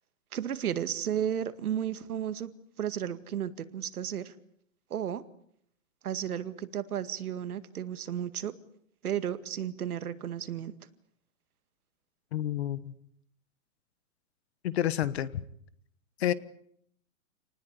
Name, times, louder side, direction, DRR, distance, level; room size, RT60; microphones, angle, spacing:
voice 1, 0.3-2.5 2.8-4.3 4.9-5.2 6.0-8.5 9.0-10.7, right 9 dB, 85° right, 12 dB, 2.1 m, -33 dB
voice 2, 12.3-12.9 14.6-15.3 16.2-16.3, left 12 dB, 45° left, 17 dB, 1.3 m, -29 dB
28.0 x 19.5 x 8.3 m, 0.69 s
hypercardioid pair, 175°, 43 cm